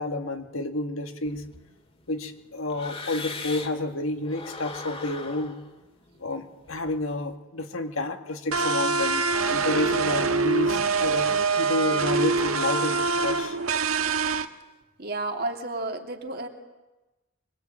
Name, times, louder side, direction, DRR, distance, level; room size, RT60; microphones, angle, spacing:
voice 1, 0.0-1.4 2.1-5.6 6.2-13.6, left 2 dB, 80° left, 5 dB, 2.2 m, -30 dB
sound 1, 1.2-3.9 4.2-7.3, left 3 dB, 30° left, 2.4 m, -41 dB
sound 2, 8.5-14.5, right 4 dB, 90° right, 1.6 m, -24 dB
voice 2, 15.0-16.5, right 2 dB, 50° right, 3 dB, 3.1 m, -31 dB
24.5 x 22.5 x 9.1 m, 1.1 s
head